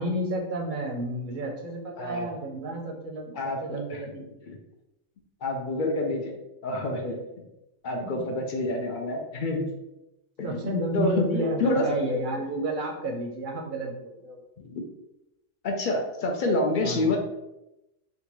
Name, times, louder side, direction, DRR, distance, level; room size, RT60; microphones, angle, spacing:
voice 1, 0.0-3.3 3.6-4.3 8.0-8.1 10.4-14.4 16.8-17.1, right 1 dB, 50° right, 1 dB, 0.7 m, -31 dB
voice 2, 2.0-2.3 3.3-4.0 4.5-4.6 5.4-6.4 6.6-7.4 7.8-9.7 10.4-10.7 10.9-11.9 14.6-14.9 15.6-17.2, left 2 dB, 60° left, 2 dB, 0.5 m, -28 dB
3.7 x 2.2 x 2.9 m, 0.92 s
omnidirectional pair, 1.3 m